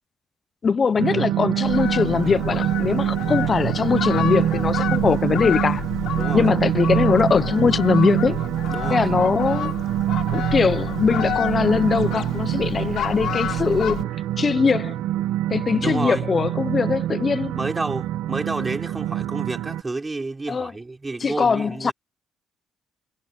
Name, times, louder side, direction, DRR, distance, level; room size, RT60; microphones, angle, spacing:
voice 1, 0.6-5.8 6.3-8.4 8.9-9.7 10.3-14.1 14.4-15.0 15.5-17.5 20.5-20.7 21.2-21.9, left 5 dB, 40° left, 0.8 m, -21 dB
sound 1, 1.0-19.8, right 12 dB, 90° right, 1.5 m, -25 dB
Fowl, 1.6-14.0, left 11 dB, 75° left, 3.6 m, -31 dB
voice 2, 6.2-6.5 8.7-9.1 15.8-16.3 17.5-21.9, right 3 dB, 20° right, 5.1 m, -30 dB
cardioid pair, 90°, 0 cm